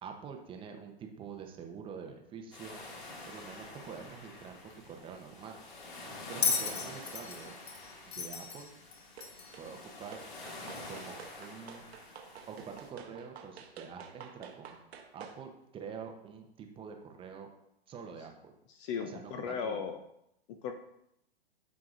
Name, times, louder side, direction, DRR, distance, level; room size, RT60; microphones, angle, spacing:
voice 1, 0.0-2.8 3.3-5.6 6.3-7.5 8.1-8.7 9.6-10.2 10.9-11.9 12.5-14.8 15.1-17.5 17.9-18.5 19.0-19.8, right 6 dB, 15° right, 4 dB, 0.7 m, -46 dB
sound 1, 2.5-12.9, left 2 dB, 50° left, 2.1 m, -47 dB
Bell, 6.4-9.6 10.8-10.9, left 6 dB, 75° left, 1.1 m, -35 dB
sound 2, 9.2-9.7 10.1-15.4, right 7 dB, 75° right, 1.2 m, -50 dB
voice 2, 18.7-20.0 20.5-20.7, left 6 dB, 30° left, 7 dB, 0.5 m, -36 dB
12.0 x 4.7 x 2.5 m, 0.79 s
hypercardioid pair, 125°, 32 cm